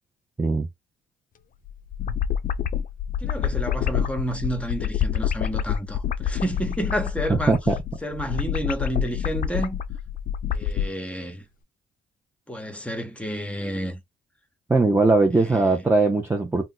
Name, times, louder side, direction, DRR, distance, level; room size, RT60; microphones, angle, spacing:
sound 1, 1.6-10.9, left 9 dB, 45° left, 0.4 m, -27 dB
voice 1, 3.2-7.5 8.0-9.8 10.5-11.4 12.5-14.0 15.3-15.7, equal, 5° left, 1.0 m, -30 dB
voice 2, 14.7-16.6, right 3 dB, 10° right, 0.6 m, -20 dB
2.5 x 2.3 x 3.9 m
cardioid pair, 90°, 20 cm